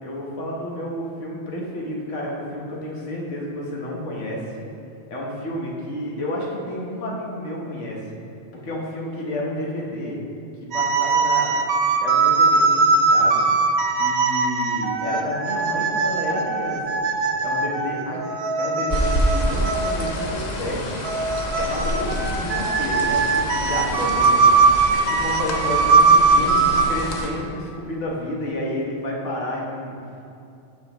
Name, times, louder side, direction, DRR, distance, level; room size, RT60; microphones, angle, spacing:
voice 1, 0.0-4.4 5.1-8.0 8.5-10.2 10.7-11.5 12.0-13.5 13.9-17.0 17.4-18.2 18.6-21.0 21.5-24.6 25.1-30.0, left 1 dB, 80° left, -3 dB, 1.5 m, -30 dB
sound 1, 10.7-20.3 21.0-26.8, right 4 dB, 65° right, 0.8 m, -20 dB
sound 2, 18.9-27.3, equal, 45° left, 0.7 m, -28 dB
12.0 x 4.1 x 2.9 m, 2.6 s
omnidirectional pair, 1.2 m